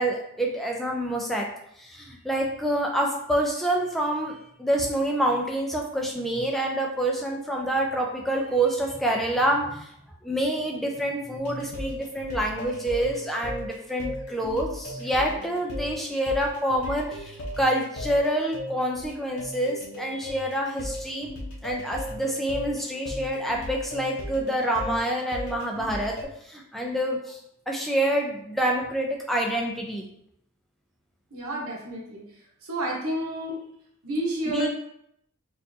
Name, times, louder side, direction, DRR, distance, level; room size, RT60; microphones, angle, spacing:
voice 1, 0.0-1.5 1.8-9.9 10.2-21.3 21.6-26.1 26.4-27.4 27.7-30.1 34.5-34.7, right 1 dB, ahead, -1 dB, 0.4 m, -27 dB
sound 1, 11.4-26.2, left 1 dB, 75° left, 0.8 m, -37 dB
voice 2, 31.3-32.2 32.6-33.6 34.0-34.7, right 1 dB, 80° right, -2 dB, 1.1 m, -30 dB
4.5 x 2.5 x 2.7 m, 0.74 s
head